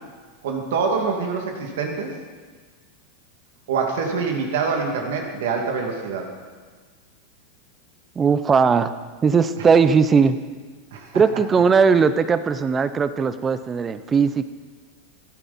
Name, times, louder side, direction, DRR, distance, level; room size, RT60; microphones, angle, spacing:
voice 1, 0.4-2.1 3.7-6.3 10.9-11.1, right 5 dB, 75° right, 2 dB, 2.2 m, -25 dB
voice 2, 8.2-8.9 9.2-10.4 11.1-14.4, right 5 dB, 20° right, 12 dB, 0.6 m, -18 dB
14.5 x 9.9 x 4.2 m, 1.5 s
supercardioid pair, 130°, 0 cm